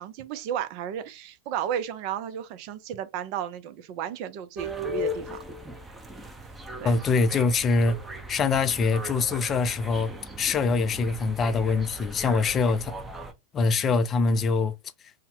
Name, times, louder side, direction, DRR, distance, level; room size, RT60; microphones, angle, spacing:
voice 1, 0.0-5.4 6.8-7.0, right 9 dB, 50° right, 0.5 m, -33 dB
sound 1, 4.6-13.3, equal, 10° right, 0.6 m, -38 dB
voice 2, 6.8-8.0 8.3-10.1 10.4-12.9 13.5-14.7, left 4 dB, 30° left, 0.4 m, -24 dB
2.7 x 2.1 x 3.7 m
figure-of-eight pair, 95°, 0 cm